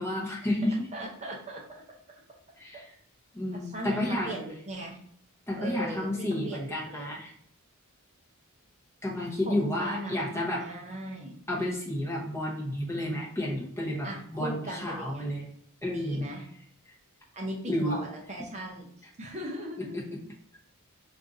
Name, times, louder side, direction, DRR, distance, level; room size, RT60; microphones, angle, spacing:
voice 1, 0.0-0.9 2.6-2.8 3.3-4.3 5.5-7.3 9.0-10.6 11.5-15.4 15.8-16.3 17.7-18.0 19.9-20.0, left 1 dB, 10° left, -3 dB, 0.7 m, -31 dB
voice 2, 0.9-1.8 3.5-5.0 5.6-7.1 9.4-11.4 14.0-15.3 15.9-16.5 17.3-18.9 19.2-20.0, right 1 dB, 30° right, -2 dB, 0.5 m, -38 dB
2.5 x 2.4 x 3.9 m, 0.62 s
head